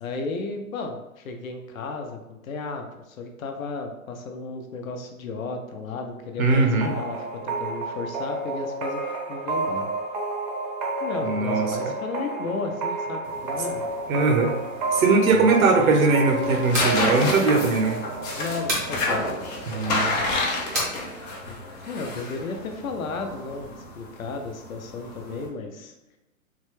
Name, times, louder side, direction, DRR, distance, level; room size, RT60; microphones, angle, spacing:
voice 1, 0.0-9.9 11.0-13.9 15.3-16.3 18.3-19.3 21.4-21.6 21.8-25.9, left 3 dB, 75° left, 4 dB, 0.8 m, -34 dB
voice 2, 6.4-6.9 11.2-11.7 14.1-14.5 14.9-18.0 19.7-20.2, right 3 dB, 75° right, 3 dB, 1.0 m, -20 dB
sound 1, 6.8-20.3, right 3 dB, 35° right, 0.7 m, -31 dB
sound 2, 13.2-25.5, left 2 dB, 30° left, 0.7 m, -31 dB
sound 3, 16.7-17.0 18.7-18.9 20.7-21.0, right 1 dB, 15° right, 0.4 m, -27 dB
3.9 x 2.2 x 3.1 m, 0.97 s
hypercardioid pair, 140°, 41 cm